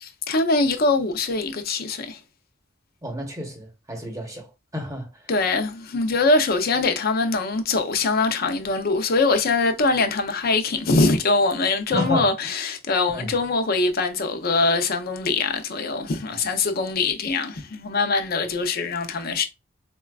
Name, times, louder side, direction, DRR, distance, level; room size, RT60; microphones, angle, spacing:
voice 1, 0.0-2.2 5.3-19.5, left 3 dB, 50° left, 0.6 m, -23 dB
voice 2, 3.0-5.1 11.9-12.3 13.1-13.3 18.4-18.5, left 1 dB, 15° right, 0.9 m, -31 dB
4.2 x 2.3 x 2.3 m
head